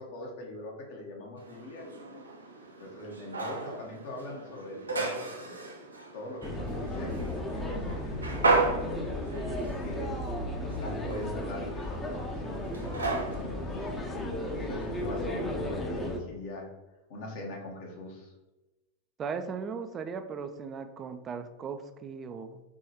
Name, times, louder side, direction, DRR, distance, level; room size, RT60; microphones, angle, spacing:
voice 1, 0.0-2.0 2.8-5.7 6.1-9.1 9.8-10.2 10.8-12.8 13.2-13.5 14.5-16.7 17.1-18.3, left 1 dB, 50° left, -1 dB, 1.1 m, -42 dB
sound 1, 1.4-15.1, right 3 dB, 75° right, 0.6 m, -35 dB
sound 2, 6.4-16.2, left 1 dB, 10° left, 0.7 m, -34 dB
voice 2, 19.2-22.6, right 5 dB, 25° right, 9 dB, 0.4 m, -37 dB
4.7 x 3.1 x 2.9 m, 1.1 s
figure-of-eight pair, 90°, 0 cm